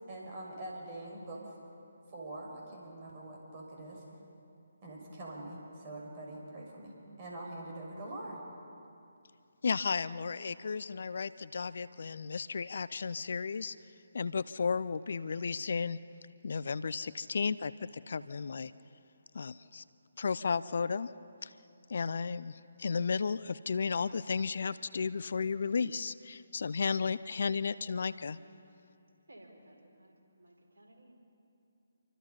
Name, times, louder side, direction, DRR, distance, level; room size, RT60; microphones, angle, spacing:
voice 1, 0.1-1.5 2.1-4.0 4.8-8.4, right 1 dB, 30° right, -2 dB, 6.1 m, -44 dB
voice 2, 9.6-13.8 14.1-16.0 16.4-18.7 19.3-19.8 20.2-21.1 21.4-21.5 21.9-28.4, left 5 dB, 50° left, 17 dB, 0.5 m, -34 dB
voice 3, 29.3-31.1, right 1 dB, 65° right, 1 dB, 4.6 m, -57 dB
27.5 x 24.5 x 5.6 m, 2.6 s
figure-of-eight pair, 140°, 0 cm